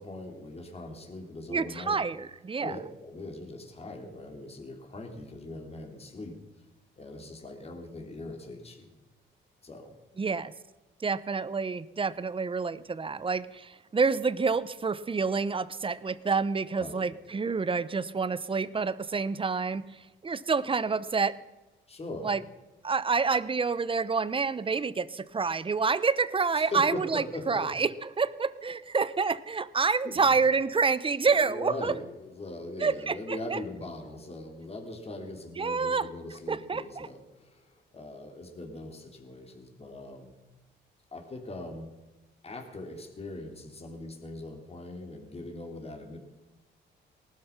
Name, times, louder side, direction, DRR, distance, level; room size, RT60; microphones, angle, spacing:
voice 1, 0.0-2.0 2.6-6.4 7.0-8.9 9.6-10.0 16.7-17.1 21.9-22.4 26.5-27.8 30.0-30.4 31.3-40.3 41.1-41.9 42.4-46.2, left 2 dB, 30° left, 3 dB, 3.3 m, -41 dB
voice 2, 1.5-2.8 10.2-10.5 11.0-19.8 20.2-21.4 22.2-22.4 22.8-31.9 32.8-33.6 35.6-36.1 36.5-37.1, right 4 dB, 25° right, 17 dB, 0.8 m, -28 dB
19.0 x 12.5 x 6.0 m, 1.1 s
cardioid pair, 90°, 20 cm